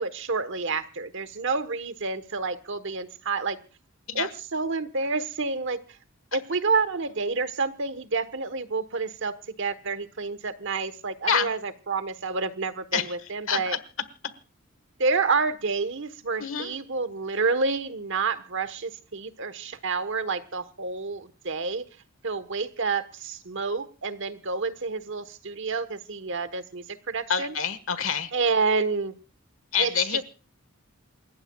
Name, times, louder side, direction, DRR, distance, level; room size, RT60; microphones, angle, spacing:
voice 1, 0.0-3.6 4.1-5.8 6.3-13.8 15.0-21.8 22.2-27.5 28.3-29.2 29.8-30.2, right 4 dB, 65° right, 12 dB, 1.3 m, -29 dB
voice 2, 16.4-16.7 27.3-28.3 29.7-30.2, left 7 dB, 70° left, 14 dB, 1.5 m, -26 dB
28.5 x 15.5 x 2.4 m, 0.35 s
head